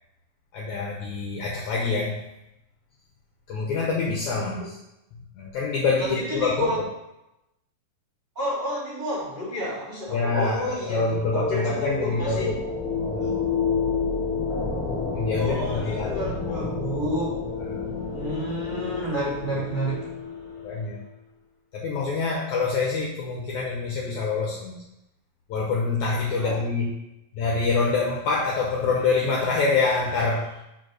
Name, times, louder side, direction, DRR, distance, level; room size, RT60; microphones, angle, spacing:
voice 1, 0.5-2.2 3.5-4.6 5.4-6.7 10.1-12.6 12.9-13.4 15.1-16.6 17.7-18.1 20.6-21.0 21.7-24.7 25.5-27.0 27.3-30.6, left 4 dB, 70° left, -2 dB, 1.9 m, -26 dB
voice 2, 6.0-6.8 8.3-12.5 15.3-17.3 18.0-20.0 26.3-26.6, equal, 15° right, -7 dB, 2.0 m, -30 dB
sound 1, 10.5-21.0, left 4 dB, 45° left, 1.8 m, -30 dB
5.5 x 4.6 x 6.2 m, 0.88 s
omnidirectional pair, 4.3 m